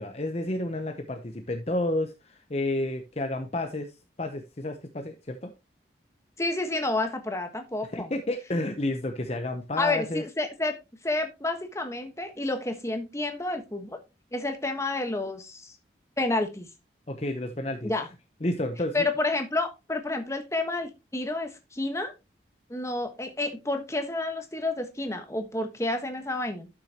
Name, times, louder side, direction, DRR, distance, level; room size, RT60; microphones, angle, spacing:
voice 1, 0.0-3.9 4.2-5.5 7.9-10.2 17.1-17.9 18.4-19.1, left 1 dB, 35° left, 6 dB, 0.8 m, -30 dB
voice 2, 6.4-8.1 9.8-10.7 11.0-14.0 14.3-15.7 16.2-16.7 17.8-18.1 18.9-22.1 22.7-26.7, left 2 dB, 15° left, 6 dB, 1.3 m, -30 dB
12.0 x 6.3 x 2.9 m, 0.25 s
head